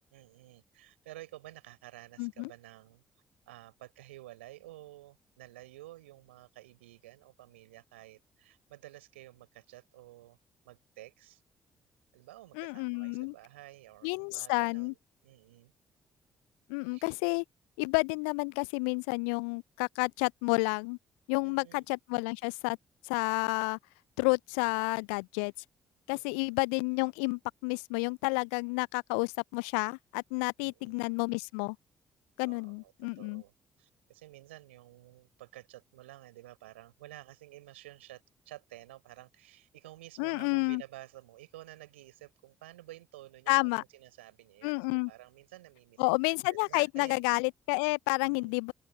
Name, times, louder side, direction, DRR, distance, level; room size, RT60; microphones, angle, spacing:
voice 1, 0.1-3.0 3.5-10.4 10.6-11.4 12.1-15.0 15.2-15.7 16.8-17.1 21.4-21.8 26.1-26.6 30.6-31.2 32.4-46.2 46.5-47.2 48.2-48.5, right 16 dB, 75° right, 4.1 m, -52 dB
voice 2, 2.2-2.5 12.6-13.3 14.0-14.9 16.7-17.4 17.8-21.0 21.3-22.8 23.0-23.8 24.2-25.5 26.1-31.8 32.4-33.4 40.2-40.8 43.5-43.8 44.6-45.1 46.0-48.7, left 38 dB, 70° left, 0.4 m, -30 dB
open air
figure-of-eight pair, 40°, 7 cm